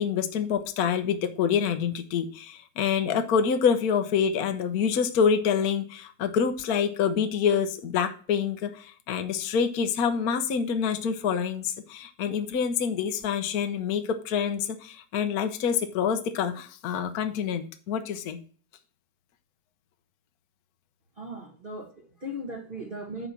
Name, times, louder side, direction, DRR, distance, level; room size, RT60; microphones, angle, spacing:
voice 1, 0.0-18.4, left 7 dB, 55° left, 1.3 m, -26 dB
voice 2, 21.2-23.3, equal, 30° right, 1.4 m, -38 dB
8.1 x 5.3 x 5.8 m
omnidirectional pair, 2.1 m